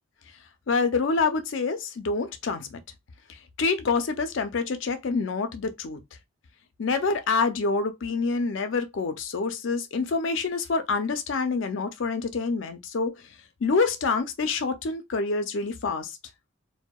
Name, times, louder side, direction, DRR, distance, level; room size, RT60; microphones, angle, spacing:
voice 1, 0.7-2.8 3.3-6.0 6.8-13.3 13.6-16.2, left 4 dB, 70° left, 0.5 m, -27 dB
2.6 x 2.1 x 2.2 m
head